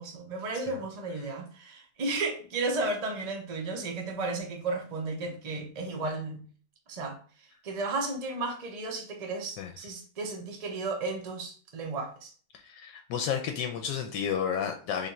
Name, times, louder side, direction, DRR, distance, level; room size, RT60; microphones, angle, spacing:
voice 1, 0.0-6.4 6.9-12.3, right 3 dB, 45° right, 0.5 m, -34 dB
voice 2, 12.6-15.1, left 8 dB, 80° left, 1.2 m, -31 dB
3.4 x 2.5 x 4.1 m
omnidirectional pair, 1.9 m